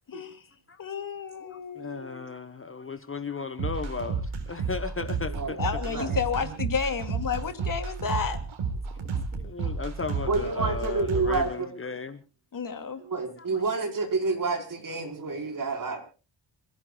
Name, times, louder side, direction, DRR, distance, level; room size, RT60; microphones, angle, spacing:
voice 1, 0.1-0.4 0.8-2.3 5.6-8.4 12.5-13.0, left 6 dB, 45° left, 8 dB, 2.6 m, -31 dB
voice 2, 1.5-5.6 9.0-12.2 13.5-13.6, left 4 dB, 25° left, 10 dB, 1.2 m, -36 dB
sound 1, 3.6-11.4, right 5 dB, 90° right, 4.4 m, -31 dB
voice 3, 5.8-6.6 10.2-11.7 13.0-16.0, right 3 dB, 45° right, 4 dB, 5.1 m, -29 dB
27.5 x 16.5 x 2.4 m, 0.34 s
wide cardioid pair, 140°, 46 cm